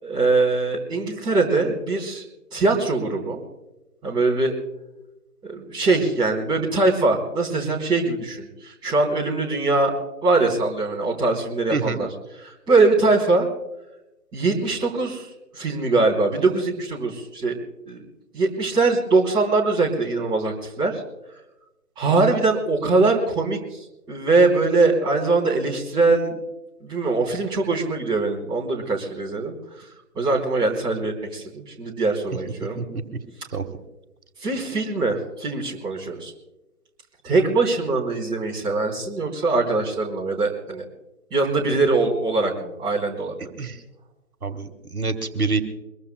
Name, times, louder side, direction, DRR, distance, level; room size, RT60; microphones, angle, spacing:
voice 1, 0.0-2.2 2.5-3.4 4.0-4.5 5.4-9.9 10.2-12.1 12.4-13.5 14.3-15.3 15.5-17.6 17.9-18.0 18.3-21.0 22.0-26.4 26.8-29.5 30.1-32.8 34.4-36.3 37.2-40.8 41.3-43.3, right 3 dB, 10° right, -5 dB, 3.2 m, -22 dB
voice 2, 44.4-45.6, right 4 dB, 70° right, 7 dB, 1.7 m, -26 dB
23.5 x 22.0 x 2.2 m, 0.99 s
figure-of-eight pair, 145°, 46 cm